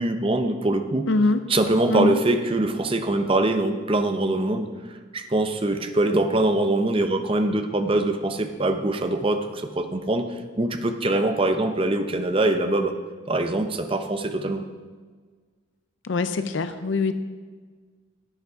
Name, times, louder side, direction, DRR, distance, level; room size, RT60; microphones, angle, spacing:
voice 1, 0.0-1.1 1.5-4.7 5.1-10.3 10.6-12.9 13.3-14.6, right 2 dB, 25° right, 7 dB, 0.7 m, -23 dB
voice 2, 1.1-1.4 1.9-2.2 16.0-17.1, left 3 dB, 65° left, 10 dB, 0.6 m, -23 dB
10.5 x 9.3 x 4.7 m, 1.5 s
head